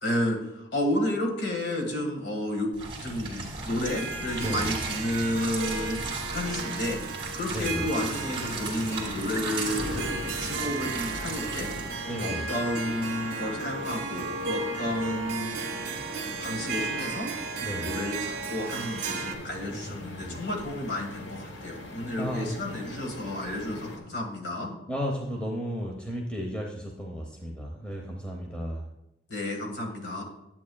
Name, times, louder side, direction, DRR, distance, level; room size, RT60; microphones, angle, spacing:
voice 1, 0.0-6.0 6.3-11.7 12.1-15.7 16.4-17.3 17.7-24.7 29.3-30.2, left 1 dB, 70° left, 2 dB, 1.7 m, -31 dB
sound 1, 2.7-11.9, right 3 dB, 30° right, 2.3 m, -35 dB
Harp, 3.9-19.3, right 4 dB, 45° right, 1.5 m, -35 dB
voice 2, 4.4-4.8 7.5-7.9 12.0-12.5 17.6-18.0 19.7-20.4 22.2-22.5 24.9-28.9, equal, 5° left, 0 dB, 0.9 m, -34 dB
sound 2, 7.7-24.0, left 1 dB, 85° left, 1.2 m, -43 dB
11.0 x 8.4 x 2.3 m, 0.89 s
head